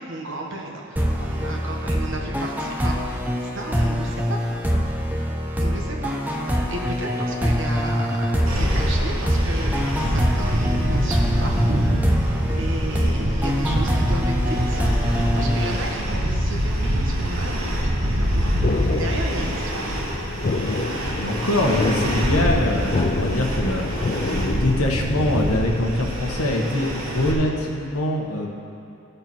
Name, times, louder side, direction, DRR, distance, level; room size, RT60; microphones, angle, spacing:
voice 1, 0.0-4.4 5.6-11.9 12.4-14.8 15.3-20.0, right 1 dB, 60° right, 0 dB, 1.5 m, -34 dB
sound 1, 1.0-16.4, equal, 10° right, 0.6 m, -25 dB
sound 2, 8.5-27.3, equal, 90° right, 2.4 m, -25 dB
sound 3, 18.6-25.6, left 3 dB, 35° left, 0.4 m, -28 dB
voice 2, 21.1-23.9 24.2-28.5, left 1 dB, 85° left, 0 dB, 1.3 m, -24 dB
16.0 x 6.8 x 4.5 m, 2.6 s
head